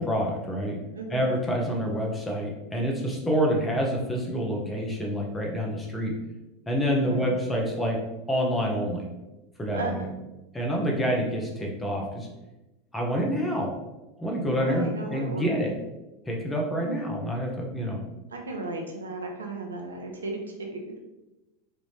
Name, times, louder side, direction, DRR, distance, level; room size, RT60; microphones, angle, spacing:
voice 1, 0.0-0.8 1.1-6.1 6.7-8.0 8.3-9.1 9.6-10.0 10.5-12.3 12.9-13.7 14.2-15.7 16.3-18.0, equal, 15° left, 0 dB, 0.9 m, -27 dB
voice 2, 0.9-1.3 7.0-7.3 9.7-9.9 14.6-15.7 18.3-20.8, right 3 dB, 90° right, 2 dB, 0.5 m, -35 dB
3.4 x 2.5 x 3.2 m, 1.0 s
hypercardioid pair, 90°, 0 cm